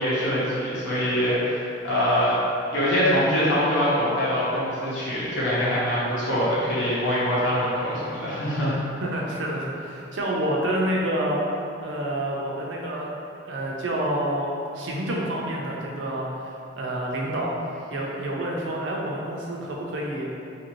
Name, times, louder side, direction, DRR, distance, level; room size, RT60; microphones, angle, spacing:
voice 1, 0.0-2.4 2.7-8.8, equal, 65° left, -9 dB, 1.0 m, -24 dB
voice 2, 9.0-11.4 11.8-13.1 13.4-14.5 14.7-16.3 16.8-17.6 17.9-20.3, right 1 dB, 70° right, -3 dB, 0.5 m, -28 dB
2.8 x 2.6 x 3.0 m, 2.7 s
head